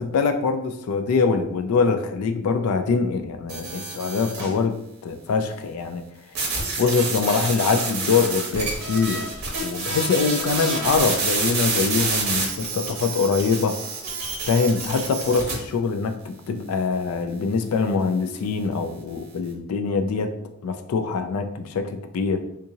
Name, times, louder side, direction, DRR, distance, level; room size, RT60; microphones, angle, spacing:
voice 1, 0.0-6.0 6.3-6.4 6.8-9.2 9.6-13.8 14.5-20.3 20.6-22.4, left 5 dB, 85° left, 8 dB, 0.3 m, -23 dB
sound 1, 3.5-4.6 6.3-15.5, right 3 dB, 45° right, 0.9 m, -28 dB
3.6 x 2.8 x 2.7 m, 0.77 s
head